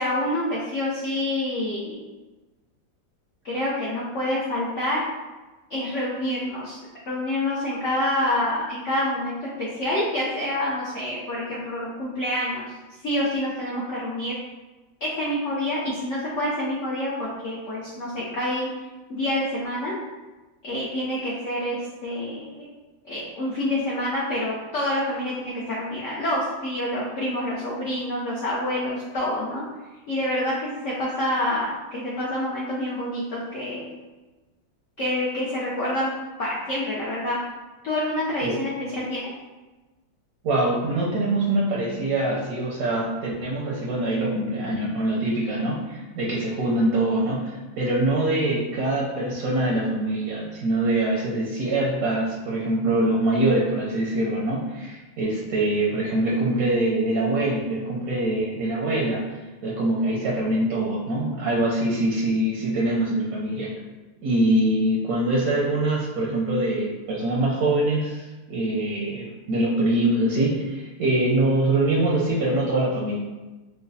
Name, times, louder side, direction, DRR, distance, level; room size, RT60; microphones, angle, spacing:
voice 1, 0.0-2.0 3.4-5.0 5.7-6.8 7.1-12.6 13.0-14.4 15.0-18.7 19.1-19.9 20.6-22.7 23.0-29.6 30.1-33.9 35.0-36.1 36.4-37.4 37.8-39.3, left 1 dB, 85° left, -6 dB, 0.6 m, -27 dB
voice 2, 40.4-63.7 64.2-73.2, right 1 dB, 70° right, -4 dB, 0.9 m, -24 dB
4.7 x 2.0 x 2.6 m, 1.2 s
omnidirectional pair, 2.0 m